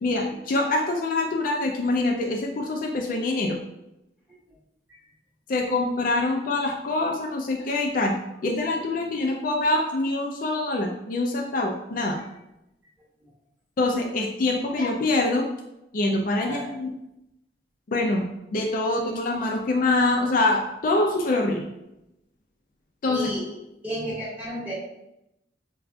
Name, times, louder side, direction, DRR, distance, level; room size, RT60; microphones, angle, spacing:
voice 1, 0.0-3.6 5.5-8.2 8.4-12.2 13.8-15.5 15.9-16.9 17.9-21.6 23.0-23.3, left 2 dB, 50° left, 1 dB, 0.4 m, -25 dB
voice 2, 16.4-16.7 23.1-23.5 23.8-24.7, equal, 10° right, -9 dB, 1.2 m, -33 dB
4.6 x 2.4 x 2.3 m, 0.87 s
head